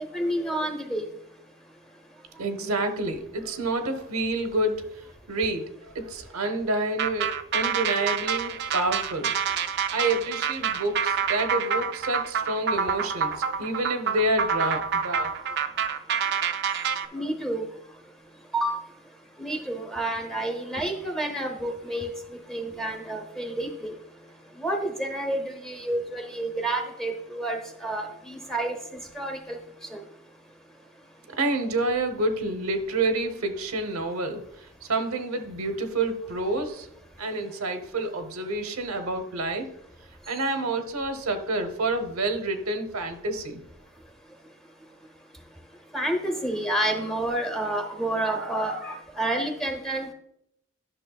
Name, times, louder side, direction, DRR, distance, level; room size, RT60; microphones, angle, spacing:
voice 1, 0.1-1.1 17.1-17.7 18.5-18.8 19.4-22.1 22.5-23.9 24.6-28.8 29.1-29.6 29.9-30.0 45.9-50.1, right 1 dB, ahead, 4 dB, 0.8 m, -29 dB
voice 2, 2.4-4.8 5.3-5.7 5.9-9.3 9.9-15.3 16.4-16.5 31.3-34.4 34.8-36.9 37.2-39.7 40.3-43.6, right 2 dB, 90° right, 7 dB, 0.9 m, -28 dB
sound 1, 7.0-17.1, right 6 dB, 50° right, 0.4 m, -27 dB
11.0 x 6.1 x 2.3 m, 0.75 s
head